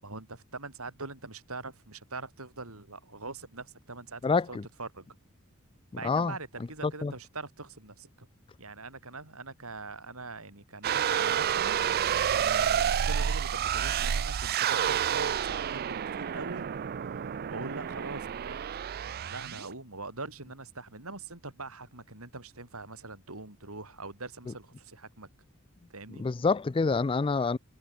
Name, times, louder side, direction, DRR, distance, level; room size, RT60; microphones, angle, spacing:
voice 1, 0.0-5.1 6.0-8.3 8.6-16.7 17.0-25.3 25.9-26.3, right 3 dB, 70° right, 5.5 m, -43 dB
voice 2, 4.2-4.6 6.0-6.3 6.8-7.1 26.2-27.6, left 4 dB, 25° left, 0.4 m, -27 dB
sound 1, 10.8-19.7, right 9 dB, 45° right, 0.4 m, -29 dB
head